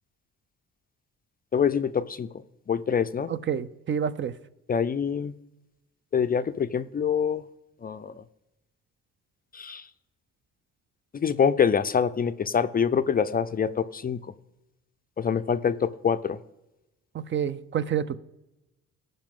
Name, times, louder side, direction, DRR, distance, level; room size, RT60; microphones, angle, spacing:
voice 1, 1.5-2.3 2.7-3.3 4.7-5.3 6.1-7.4 7.8-8.2 9.5-9.9 11.1-14.2 15.2-16.4, left 7 dB, 30° left, 11 dB, 0.4 m, -25 dB
voice 2, 3.3-4.3 17.1-18.2, right 8 dB, 40° right, 15 dB, 0.5 m, -28 dB
15.5 x 5.4 x 3.7 m, 0.96 s
cardioid pair, 90°, 31 cm